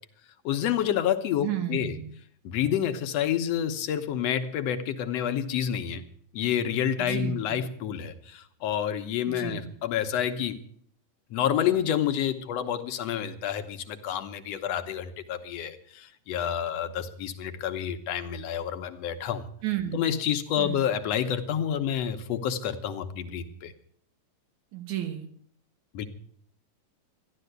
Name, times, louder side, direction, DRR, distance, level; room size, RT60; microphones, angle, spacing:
voice 1, 0.4-2.0 2.4-6.0 6.3-10.6 11.3-19.5 19.9-23.7 25.9-26.1, left 9 dB, 70° left, 8 dB, 2.0 m, -29 dB
voice 2, 1.4-2.1 7.0-7.6 9.3-9.8 19.6-20.1 20.6-20.8 24.7-25.3, right 12 dB, 85° right, 6 dB, 2.7 m, -32 dB
13.5 x 11.0 x 8.0 m, 0.62 s
omnidirectional pair, 3.3 m